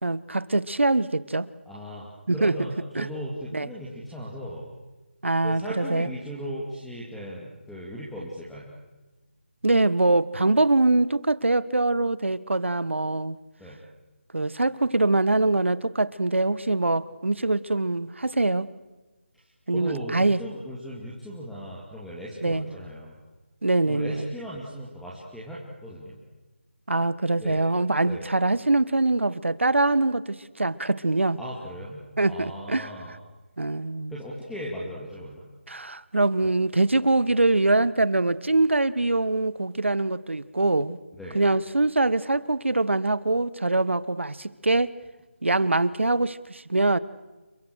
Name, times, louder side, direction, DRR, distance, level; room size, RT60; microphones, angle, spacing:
voice 1, 0.0-1.5 2.3-2.5 2.9-3.1 3.5-3.7 5.2-6.1 9.6-13.4 14.3-18.7 19.7-20.4 22.4-22.7 23.6-24.3 26.9-31.4 32.2-32.9 33.6-34.1 35.7-41.0 41.3-44.9 45.4-47.0, right 2 dB, 80° right, 17 dB, 1.5 m, -23 dB
voice 2, 1.7-4.7 5.4-8.7 13.6-13.8 19.7-23.2 23.8-26.2 27.4-27.6 28.0-28.3 31.4-33.1 34.1-35.5 36.4-36.5 41.2-41.4, equal, ahead, -7 dB, 2.5 m, -37 dB
29.5 x 23.5 x 6.5 m, 1.1 s
figure-of-eight pair, 165°, 6 cm